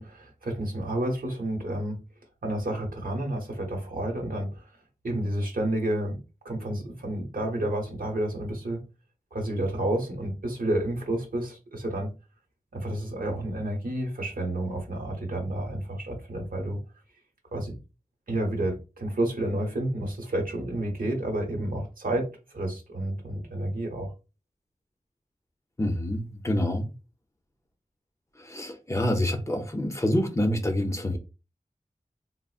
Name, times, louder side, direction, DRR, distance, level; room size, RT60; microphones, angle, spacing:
voice 1, 0.0-2.0 2.4-4.6 5.0-8.8 9.3-12.1 12.7-16.8 17.5-17.8 18.3-22.3 22.5-24.1, right 1 dB, 85° right, 1.0 m, -30 dB
voice 2, 25.8-26.9 28.4-31.2, left 1 dB, 20° left, 0.6 m, -27 dB
3.6 x 2.0 x 2.4 m
wide cardioid pair, 65°, 14 cm